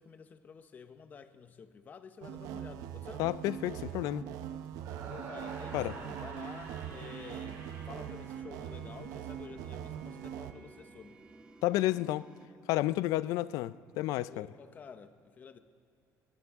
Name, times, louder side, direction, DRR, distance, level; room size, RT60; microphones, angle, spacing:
voice 1, 0.0-3.2 5.1-11.2 14.3-15.6, left 6 dB, 30° left, 0.7 m, -50 dB
sound 1, 2.2-10.5, right 10 dB, 85° right, 0.7 m, -42 dB
voice 2, 3.2-4.2 5.7-5.9 11.6-12.3 12.7-14.5, left 16 dB, 85° left, 0.4 m, -31 dB
sound 2, 4.8-9.0, right 4 dB, 65° right, 3.1 m, -48 dB
sound 3, 5.1-12.5, right 3 dB, 15° right, 0.7 m, -56 dB
21.0 x 18.5 x 3.5 m
cardioid pair, 165°, 6 cm